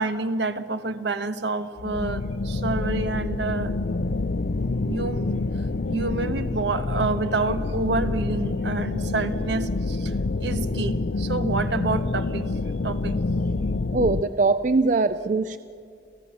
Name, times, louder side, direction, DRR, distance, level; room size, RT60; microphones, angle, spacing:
voice 1, 0.0-3.7 4.8-5.3 5.9-10.1 10.4-12.6 12.8-13.2, right 3 dB, 70° right, 10 dB, 1.3 m, -28 dB
sound 1, 1.8-14.2, left 3 dB, 55° left, 0.5 m, -27 dB
voice 2, 13.9-15.6, right 3 dB, 45° right, 12 dB, 0.5 m, -22 dB
28.0 x 16.5 x 7.1 m, 2.4 s
head